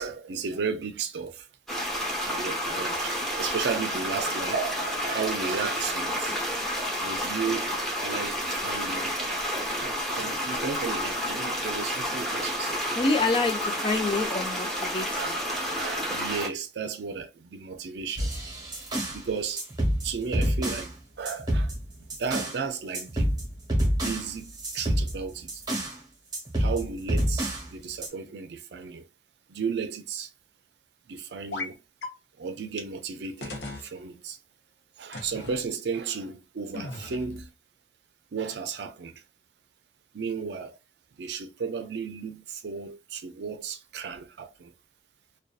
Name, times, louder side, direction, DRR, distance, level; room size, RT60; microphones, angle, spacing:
voice 1, 0.0-1.5 2.2-6.4 7.0-7.7 8.0-9.1 9.6-12.9 15.1-18.3 19.1-19.7 20.0-21.7 22.2-23.4 24.0-25.6 26.6-29.1 29.5-30.3 31.1-31.8 32.4-34.4 35.0-37.5 38.3-39.2 40.1-40.8 41.2-44.7, right 5 dB, 65° right, 0.4 m, -34 dB
sound 1, 1.7-16.5, equal, ahead, 0.8 m, -30 dB
voice 2, 12.9-15.1, left 3 dB, 30° left, 0.5 m, -26 dB
sound 2, 18.2-19.2 19.6-20.9 21.3-22.6 22.9-26.0 26.3-27.7 28.0-28.1, equal, 20° right, 1.0 m, -28 dB
sound 3, 31.5-31.7 32.0-32.1 32.8-32.9 33.4-33.9 35.1-35.6 36.7-37.5, left 2 dB, 80° left, 0.8 m, -37 dB
2.5 x 2.3 x 2.3 m
head